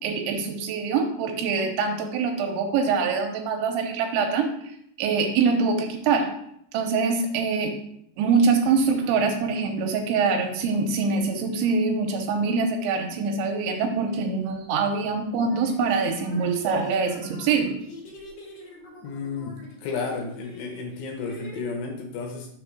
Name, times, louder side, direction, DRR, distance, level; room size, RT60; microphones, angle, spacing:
voice 1, 0.0-4.5 5.0-6.3 6.7-7.7 8.2-17.7, right 4 dB, 80° right, 3 dB, 3.1 m, -24 dB
sound 1, 14.5-14.6 15.2-21.6, left 2 dB, 50° left, 2.4 m, -46 dB
voice 2, 19.0-22.5, left 4 dB, 75° left, 2 dB, 2.9 m, -32 dB
6.8 x 3.4 x 6.0 m, 0.71 s
omnidirectional pair, 5.4 m